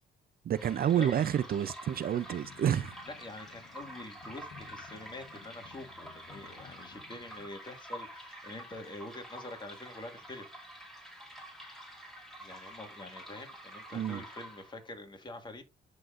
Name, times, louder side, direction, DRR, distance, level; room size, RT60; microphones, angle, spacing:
voice 1, 0.5-2.9 13.9-14.2, right 9 dB, 50° right, 0.5 m, -29 dB
sound 1, 0.6-14.9, equal, ahead, 2.4 m, -48 dB
sound 2, 2.4-7.5, left 8 dB, 60° left, 0.8 m, -55 dB
voice 2, 3.0-10.5 12.4-15.6, left 2 dB, 25° left, 1.8 m, -46 dB
11.0 x 3.8 x 2.5 m
cardioid pair, 90°, 20 cm